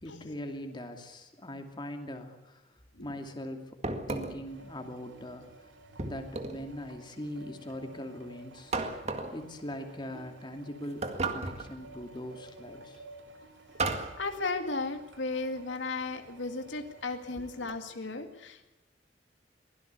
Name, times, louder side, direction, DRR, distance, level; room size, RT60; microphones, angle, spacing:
voice 1, 0.0-2.6 3.0-3.7 4.1-5.5 6.0-8.8 9.3-11.0 11.3-13.0 17.4-17.5 18.2-18.3, left 1 dB, 25° left, 4 dB, 2.6 m, -41 dB
sound 1, 3.8-4.5 6.0-6.7 8.7-9.4 11.0-11.7 13.8-14.2, right 3 dB, 35° right, 2.0 m, -33 dB
Clarifier Effluent Pipe (Toneful Melodic Meditative), 4.4-17.8, right 2 dB, 80° right, 3.1 m, -54 dB
voice 2, 14.2-18.7, left 3 dB, 80° left, 6 dB, 2.2 m, -35 dB
23.5 x 16.5 x 8.3 m, 0.98 s
head